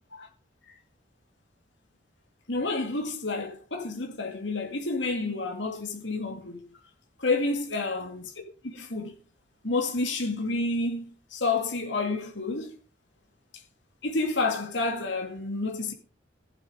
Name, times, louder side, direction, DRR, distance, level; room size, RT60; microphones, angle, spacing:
voice 1, 2.5-6.6 7.2-8.3 8.6-9.2 9.6-12.7 14.0-15.9, left 3 dB, 75° left, 2.2 m, -29 dB
15.0 x 7.5 x 5.1 m
head